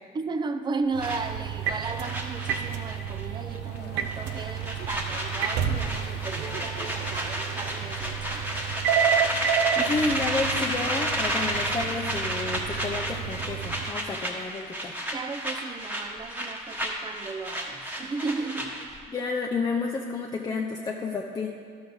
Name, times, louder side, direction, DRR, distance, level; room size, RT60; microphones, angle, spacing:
voice 1, 0.1-8.6 15.1-19.0, right 4 dB, 25° right, 9 dB, 0.5 m, -35 dB
sound 1, 0.9-13.9, right 8 dB, 85° right, 0.5 m, -30 dB
sound 2, 1.0-3.3 3.5-3.8 4.1-19.0, equal, 10° right, 1.2 m, -32 dB
Applause, 3.5-10.3, left 5 dB, 85° left, 0.9 m, -47 dB
voice 2, 9.7-15.0 19.1-21.5, left 3 dB, 25° left, 1 dB, 0.6 m, -30 dB
12.0 x 6.0 x 4.0 m, 2.3 s
cardioid pair, 110°, 17 cm